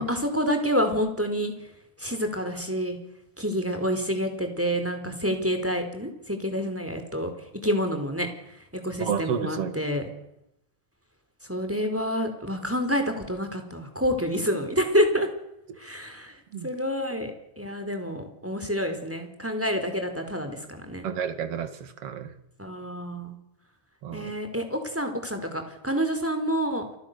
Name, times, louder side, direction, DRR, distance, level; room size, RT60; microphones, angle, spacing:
voice 1, 0.0-1.5 2.0-3.0 3.4-7.3 7.6-8.3 8.8-10.0 11.5-15.3 15.8-16.3 16.6-17.3 17.6-21.1 22.6-23.3 24.1-26.8, equal, 5° right, 6 dB, 4.3 m, -28 dB
voice 2, 9.0-9.8 16.5-16.7 21.0-22.3 24.0-24.3, right 7 dB, 50° right, 10 dB, 3.0 m, -31 dB
30.0 x 23.5 x 7.0 m, 0.82 s
omnidirectional pair, 3.6 m